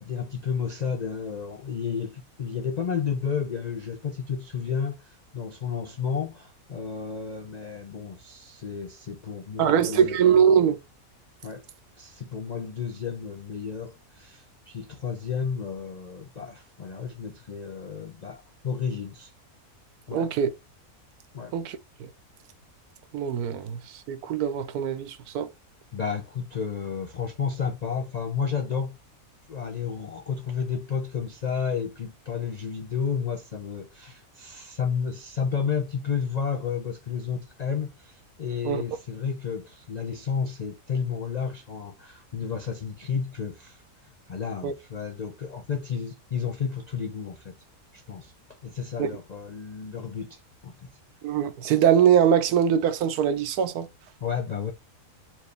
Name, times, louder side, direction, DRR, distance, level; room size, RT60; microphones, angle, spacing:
voice 1, 0.0-10.2 11.4-11.6 12.0-19.3 20.1-20.3 21.3-21.5 25.9-29.0 29.5-43.8 44.3-47.5 47.9-48.3 48.6-50.9 54.2-54.7, left 6 dB, 75° left, 0.3 m, -32 dB
voice 2, 9.6-10.8 20.1-20.5 21.5-21.8 23.1-23.8 24.1-25.5 38.6-38.8 44.6-44.7 49.0-49.1 51.2-53.9, right 8 dB, 85° right, 1.2 m, -22 dB
4.5 x 2.7 x 3.2 m
omnidirectional pair, 1.6 m